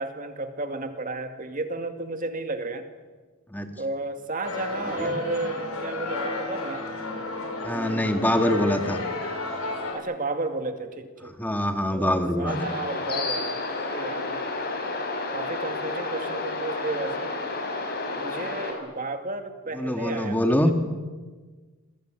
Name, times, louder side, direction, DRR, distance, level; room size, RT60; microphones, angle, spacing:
voice 1, 0.0-2.9 3.8-6.8 7.7-8.2 9.9-11.3 11.9-14.4 15.3-17.3 18.2-20.7, right 2 dB, 40° right, 6 dB, 2.3 m, -33 dB
sound 1, 4.4-9.9, left 2 dB, 80° left, 7.9 m, -32 dB
voice 2, 4.8-5.1 7.6-9.0 11.2-12.6 19.7-20.7, left 1 dB, 10° left, 5 dB, 1.9 m, -24 dB
sound 2, 12.5-18.7, left 3 dB, 45° left, 6.4 m, -31 dB
27.5 x 22.0 x 9.1 m, 1.4 s
head